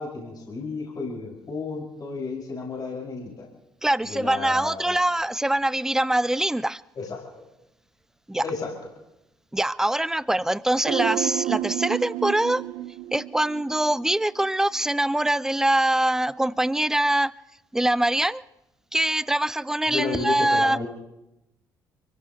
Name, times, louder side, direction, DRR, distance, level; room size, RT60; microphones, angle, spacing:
voice 1, 0.0-3.5 4.0-5.0 7.0-7.2 8.4-8.7 19.9-20.9, left 4 dB, 40° left, -3 dB, 5.8 m, -32 dB
voice 2, 3.8-6.8 8.3-8.4 9.5-12.6 13.1-17.3 17.7-18.4 18.9-20.8, right 1 dB, 5° right, 21 dB, 0.5 m, -23 dB
sound 1, 10.9-14.1 14.4-14.5, right 14 dB, 60° right, 0.6 m, -30 dB
29.5 x 16.0 x 3.0 m, 0.91 s
figure-of-eight pair, 45°, 10 cm